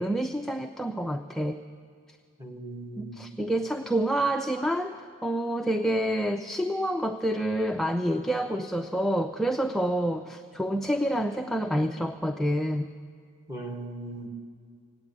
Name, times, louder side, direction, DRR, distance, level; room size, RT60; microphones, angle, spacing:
voice 1, 0.0-1.6 3.0-5.0 5.2-12.9, right 1 dB, ahead, 4 dB, 0.3 m, -28 dB
voice 2, 2.4-3.3 13.5-14.3, right 1 dB, 15° right, 0 dB, 1.6 m, -38 dB
18.5 x 8.8 x 8.4 m, 2.2 s
head